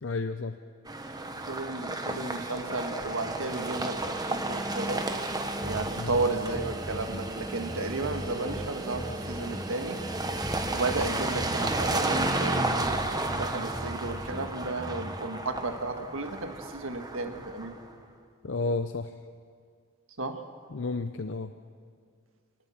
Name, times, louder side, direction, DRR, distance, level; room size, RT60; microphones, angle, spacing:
voice 1, 0.0-0.6 6.0-6.1 18.4-19.1 20.7-21.5, left 3 dB, 65° left, 9 dB, 0.6 m, -31 dB
sound 1, 0.9-17.8, right 2 dB, 20° right, 1.2 m, -33 dB
voice 2, 1.5-5.0 5.6-10.0 10.7-12.9 13.3-17.7 20.2-20.4, right 3 dB, 85° right, 6 dB, 1.6 m, -33 dB
sound 2, 5.6-15.2, equal, 5° left, 0.8 m, -40 dB
24.5 x 18.5 x 7.3 m, 2.1 s
head